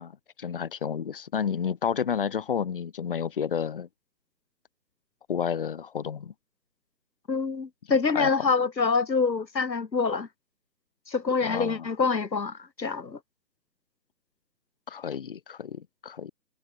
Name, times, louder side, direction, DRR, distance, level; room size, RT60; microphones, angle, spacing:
voice 1, 0.0-3.9 5.3-6.3 8.1-8.4 11.4-11.9 14.9-16.3, left 7 dB, 30° left, 2.9 m, -31 dB
voice 2, 7.3-10.3 11.1-13.2, left 4 dB, 85° left, 2.5 m, -26 dB
hypercardioid pair, 165°, 50 cm